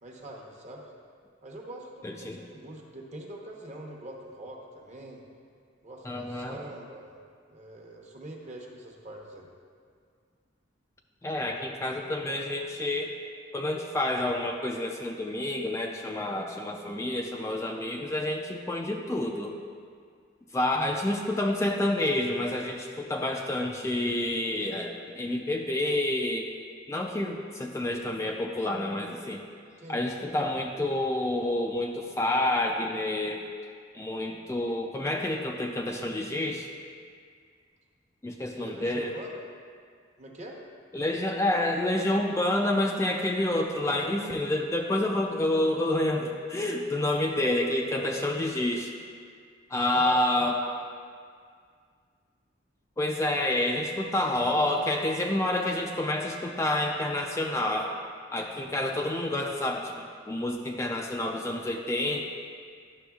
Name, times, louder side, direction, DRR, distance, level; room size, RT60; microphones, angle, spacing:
voice 1, 0.0-0.9 1.4-5.2 5.8-7.2 7.5-9.5 20.7-20.9 29.8-30.0 38.5-39.4 40.2-40.6 49.9-50.5 54.4-54.8, right 1 dB, 40° right, -1 dB, 0.9 m, -44 dB
voice 2, 2.0-2.4 6.0-6.6 11.2-13.1 13.5-19.6 20.5-26.5 26.9-29.4 29.9-33.4 33.9-36.7 38.2-39.1 40.9-48.9 49.7-50.6 53.0-57.9 58.3-62.2, left 1 dB, 15° left, 1 dB, 0.3 m, -28 dB
11.0 x 6.1 x 2.3 m, 2.1 s
head